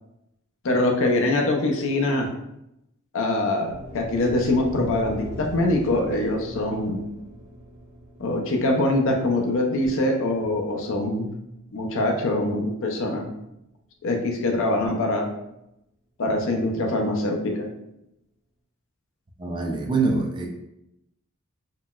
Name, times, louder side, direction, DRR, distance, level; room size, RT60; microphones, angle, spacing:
voice 1, 0.6-2.3 3.1-7.1 8.2-11.3 11.7-13.3 14.0-15.3 16.2-17.7, left 2 dB, 60° left, 2 dB, 0.5 m, -23 dB
sound 1, 3.7-11.9, equal, 60° right, 1.3 m, -40 dB
voice 2, 19.4-20.5, right 3 dB, 20° right, 1 dB, 0.4 m, -24 dB
3.8 x 2.1 x 2.3 m, 0.84 s
head